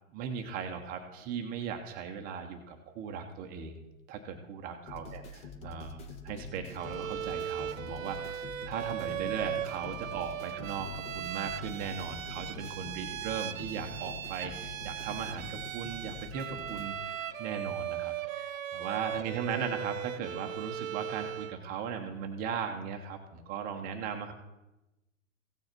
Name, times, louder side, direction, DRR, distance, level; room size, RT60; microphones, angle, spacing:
voice 1, 0.1-3.8 4.1-24.3, right 6 dB, 20° right, 5 dB, 0.8 m, -38 dB
sound 1, 4.9-16.9, left 3 dB, 15° left, 0.7 m, -45 dB
Bowed string instrument, 6.8-21.6, right 11 dB, 70° right, 0.7 m, -38 dB
16.0 x 6.4 x 4.4 m, 0.97 s
hypercardioid pair, 130°, 42 cm